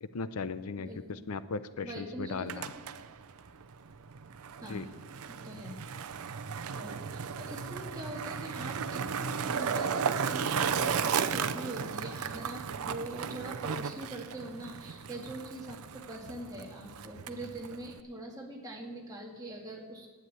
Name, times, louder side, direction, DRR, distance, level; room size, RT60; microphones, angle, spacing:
voice 1, 0.0-2.7 4.6-4.9, left 4 dB, 90° left, 13 dB, 0.6 m, -37 dB
voice 2, 0.9-1.2 1.8-2.5 4.6-4.9 5.3-5.8 6.7-20.1, right 1 dB, 15° right, -2 dB, 2.1 m, -43 dB
Skateboard, 2.3-18.0, right 6 dB, 85° right, 0.6 m, -35 dB
11.0 x 9.3 x 8.3 m, 1.5 s
head